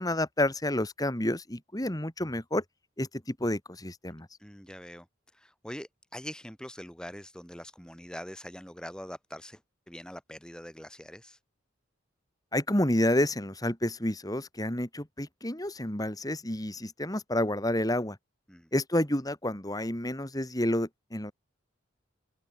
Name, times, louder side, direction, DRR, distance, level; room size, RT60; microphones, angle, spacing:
voice 1, 0.0-2.6 3.0-4.3 12.5-18.2 18.7-21.3, left 1 dB, 20° left, 2.8 m, -29 dB
voice 2, 4.4-5.1 5.3-9.6 9.9-11.4 18.5-18.7, equal, 5° left, 2.9 m, -43 dB
open air
head